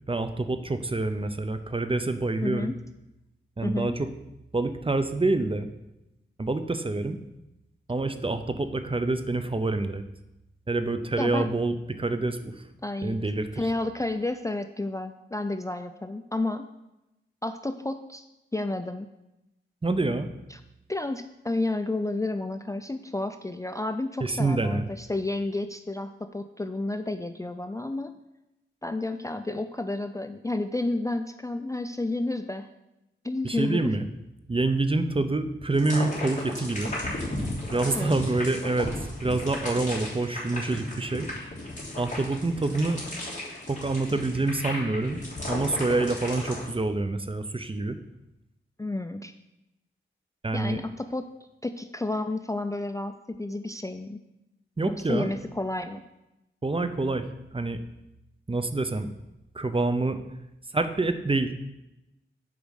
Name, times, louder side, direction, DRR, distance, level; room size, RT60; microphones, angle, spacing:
voice 1, 0.1-2.7 3.6-4.1 4.5-5.7 6.4-7.2 7.9-10.0 10.7-12.5 13.0-13.6 19.8-20.3 24.2-24.9 33.4-34.1 34.5-36.9 37.7-38.9 39.2-41.3 42.0-43.0 43.7-48.0 50.4-50.8 54.8-55.3 56.6-57.2 57.5-57.8 58.5-59.1 59.5-60.2 60.7-61.5, right 2 dB, 25° right, 10 dB, 0.7 m, -27 dB
voice 2, 2.4-2.8 3.6-4.0 11.2-11.5 12.8-13.2 13.6-16.7 17.4-18.2 18.5-19.1 20.5-20.6 20.9-28.1 28.8-32.7 33.2-33.9 37.8-38.1 48.8-49.3 50.5-51.3 51.6-54.2 55.1-56.0, left 2 dB, 15° left, 8 dB, 0.4 m, -31 dB
sound 1, 35.7-46.7, left 1 dB, 35° left, 3.3 m, -35 dB
6.9 x 5.1 x 6.4 m, 0.93 s
wide cardioid pair, 65°, 21 cm